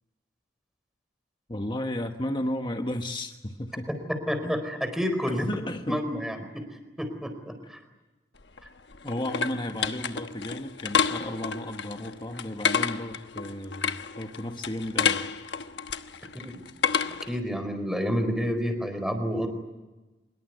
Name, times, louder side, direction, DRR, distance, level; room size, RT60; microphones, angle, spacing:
voice 1, 1.5-3.9 4.4-4.6 5.3-6.0 9.0-15.2, left 1 dB, 25° left, 5 dB, 1.3 m, -33 dB
voice 2, 4.3-5.5 5.9-6.6 7.0-7.8 16.3-16.7 17.1-19.5, equal, 5° right, 7 dB, 4.3 m, -29 dB
sound 1, 8.4-17.4, left 6 dB, 70° left, 1.2 m, -30 dB
25.0 x 22.0 x 9.3 m, 1.1 s
head